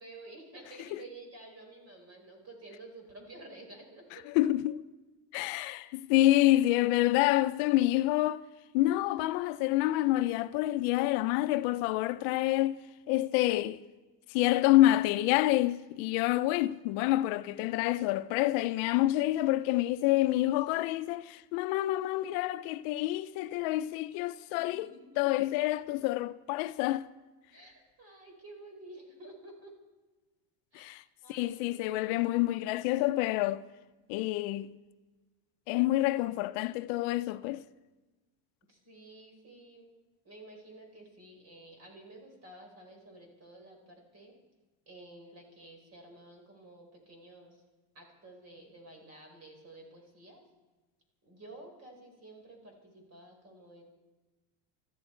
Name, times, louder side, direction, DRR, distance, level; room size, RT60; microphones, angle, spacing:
voice 1, 0.0-4.3 5.6-5.9 24.5-25.4 27.5-29.7 30.7-31.9 38.7-39.9 40.2-44.3 44.9-47.6 47.9-50.4 51.2-53.8, right 2 dB, 30° right, 4.3 m, -51 dB
voice 2, 4.3-4.7 5.3-8.4 8.7-12.8 13.1-13.8 14.3-24.9 25.2-27.1 30.7-31.0 31.3-33.6 34.1-34.7 35.7-37.6, left 16 dB, 85° left, 0.7 m, -27 dB
19.0 x 14.0 x 4.4 m
cardioid pair, 155°, 47 cm